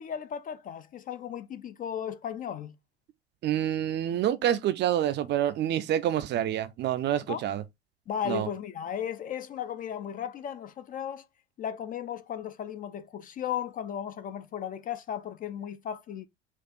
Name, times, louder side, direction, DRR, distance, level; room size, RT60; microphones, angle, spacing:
voice 1, 0.0-2.7 7.3-7.4 8.1-11.2 11.6-16.3, left 9 dB, 25° left, 0.4 m, -35 dB
voice 2, 3.4-7.6 8.3-8.5, right 11 dB, 35° right, 0.5 m, -27 dB
4.4 x 2.3 x 4.2 m
hypercardioid pair, 75°, 34 cm